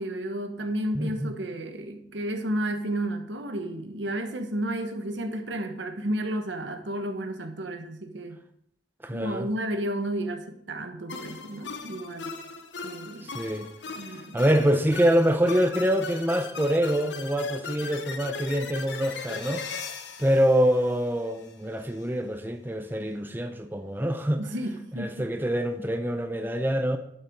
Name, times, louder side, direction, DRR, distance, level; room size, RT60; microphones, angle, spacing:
voice 1, 0.0-8.4 9.1-12.3 12.8-13.3 14.0-14.4 24.4-25.3, right 1 dB, 85° right, 1.3 m, -32 dB
voice 2, 0.9-1.3 9.0-9.5 13.2-13.7 14.3-19.6 20.2-24.4 25.0-27.0, equal, 10° right, 0.6 m, -25 dB
sound 1, 11.1-21.5, left 5 dB, 80° left, 1.0 m, -39 dB
11.0 x 6.6 x 4.7 m
head